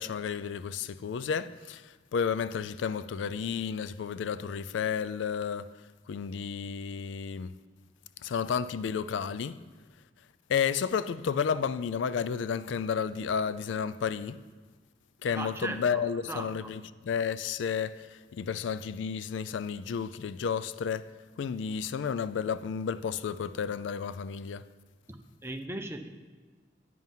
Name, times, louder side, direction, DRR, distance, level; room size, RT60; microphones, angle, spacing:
voice 1, 0.0-5.7 6.1-7.6 8.2-9.6 10.5-14.4 15.2-21.1 21.4-24.6, left 6 dB, 80° left, 0.3 m, -32 dB
voice 2, 15.3-16.7 25.1-26.1, right 2 dB, 15° right, 0.5 m, -38 dB
9.2 x 5.6 x 7.4 m
head